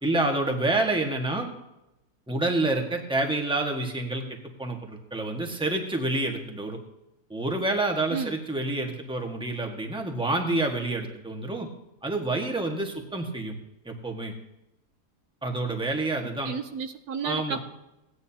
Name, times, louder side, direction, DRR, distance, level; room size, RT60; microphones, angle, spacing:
voice 1, 0.0-1.5 2.3-6.8 7.3-11.7 12.0-13.5 13.8-14.3 15.4-16.5 17.2-17.6, right 2 dB, 5° right, 2 dB, 1.4 m, -28 dB
voice 2, 16.4-17.6, right 6 dB, 75° right, 8 dB, 1.2 m, -32 dB
17.0 x 9.6 x 2.9 m, 0.89 s
omnidirectional pair, 1.7 m